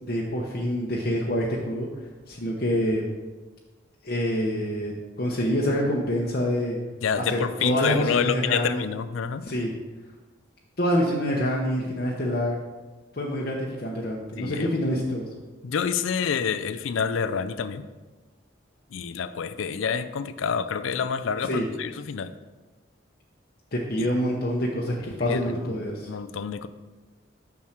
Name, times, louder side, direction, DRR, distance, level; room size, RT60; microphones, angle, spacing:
voice 1, 0.0-1.9 2.3-3.0 4.0-6.8 7.2-8.8 9.5-9.7 10.8-12.6 13.1-15.2 21.4-21.7 23.7-26.1, equal, 50° left, -3 dB, 0.8 m, -26 dB
voice 2, 7.0-9.4 14.4-14.8 15.6-17.8 18.9-22.3 24.0-24.1 25.2-25.8 26.1-26.7, left 6 dB, 80° left, 12 dB, 0.4 m, -28 dB
7.2 x 6.3 x 4.4 m, 1.2 s
head